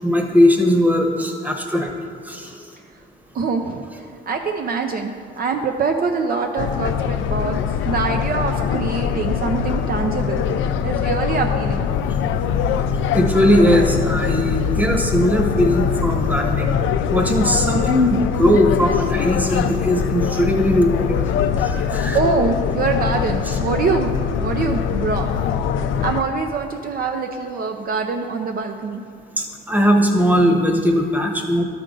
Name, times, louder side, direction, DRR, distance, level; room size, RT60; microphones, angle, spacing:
voice 1, 0.0-1.9 2.3-2.5 13.1-16.8 17.1-21.1 21.6-22.2 23.5-23.6 29.4-31.6, equal, 10° right, 2 dB, 1.0 m, -18 dB
voice 2, 3.3-3.8 4.3-10.4 10.8-11.9 22.1-24.1 24.4-25.3 26.0-29.0, right 4 dB, 50° right, 4 dB, 0.5 m, -24 dB
sound 1, 6.6-26.2, left 7 dB, 80° left, 0.4 m, -22 dB
11.5 x 5.2 x 3.8 m, 2.1 s
cardioid pair, 90°, 20 cm